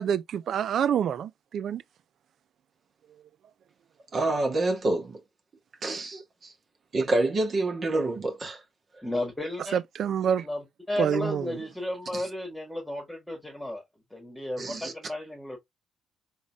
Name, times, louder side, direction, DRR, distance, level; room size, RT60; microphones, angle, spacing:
voice 1, 0.0-1.8 9.7-10.4 11.0-11.4, right 8 dB, 65° right, 0.4 m, -27 dB
voice 2, 4.1-5.2 5.8-6.5 6.9-8.6 12.1-12.2 14.6-14.9, right 2 dB, 45° right, 1.7 m, -27 dB
voice 3, 9.0-9.8 10.4-13.8 14.1-15.6, left 1 dB, 5° left, 1.7 m, -33 dB
3.9 x 3.7 x 2.3 m
cardioid pair, 90°, 0 cm